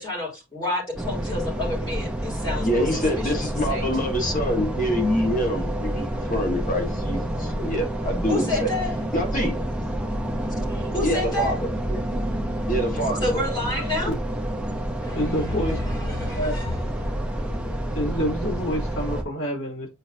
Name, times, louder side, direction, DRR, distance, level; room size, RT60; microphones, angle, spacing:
voice 1, 0.0-3.3 3.7-3.9 8.3-8.9 10.7-11.6 13.2-14.1 15.0-17.1, left 2 dB, 20° left, 3.4 m, -29 dB
sound 1, 1.0-19.2, right 1 dB, 5° right, 0.8 m, -28 dB
voice 2, 2.6-8.7 9.1-9.6 11.0-12.0 12.7-13.4, equal, 40° left, 1.7 m, -26 dB
voice 3, 15.1-15.8 16.4-16.5 17.9-19.9, equal, 70° left, 3.9 m, -27 dB
8.0 x 4.5 x 2.8 m
head